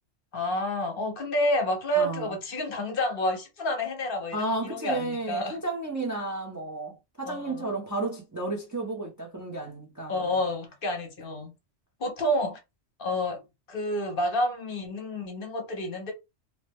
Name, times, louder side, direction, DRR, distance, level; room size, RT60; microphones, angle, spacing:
voice 1, 0.3-5.6 7.3-7.7 10.1-11.5 12.0-12.6 13.0-13.4 13.7-16.1, left 1 dB, 55° left, 0.9 m, -29 dB
voice 2, 1.9-2.3 4.3-10.4, right 2 dB, 20° right, 0.5 m, -32 dB
2.8 x 2.1 x 3.3 m
omnidirectional pair, 1.2 m